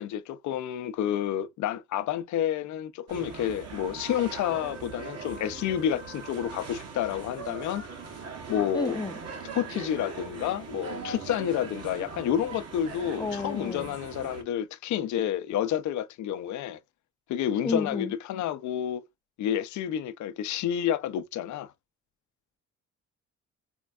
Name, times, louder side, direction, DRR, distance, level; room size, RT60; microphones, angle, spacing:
voice 1, 0.0-7.8 8.5-9.0 9.5-16.8 17.3-19.0 19.4-21.7, left 10 dB, 70° left, 0.6 m, -29 dB
sound 1, 3.1-14.4, right 5 dB, 55° right, 1.2 m, -40 dB
voice 2, 8.7-9.2 13.2-14.0 17.6-18.2, left 3 dB, 15° left, 0.5 m, -31 dB
4.4 x 2.2 x 2.2 m
cardioid pair, 90°, 30 cm